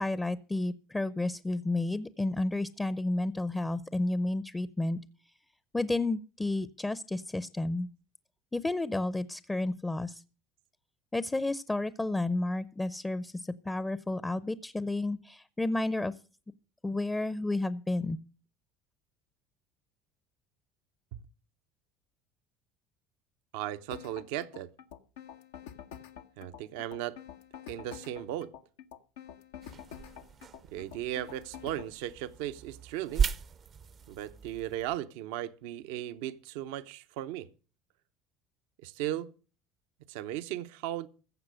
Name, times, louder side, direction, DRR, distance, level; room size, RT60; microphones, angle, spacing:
voice 1, 0.0-5.0 5.7-7.9 8.5-10.2 11.1-16.1 16.8-18.2, left 2 dB, 15° left, 0.6 m, -31 dB
voice 2, 23.5-24.7 26.4-27.2 27.7-28.5 30.7-33.3 34.1-37.5 38.8-39.3 40.1-41.1, right 12 dB, 80° right, 0.7 m, -36 dB
sound 1, 23.9-31.9, left 9 dB, 85° left, 1.0 m, -47 dB
sound 2, 29.6-35.0, right 6 dB, 40° right, 0.6 m, -36 dB
15.0 x 7.3 x 6.3 m
hypercardioid pair, 85°, 0 cm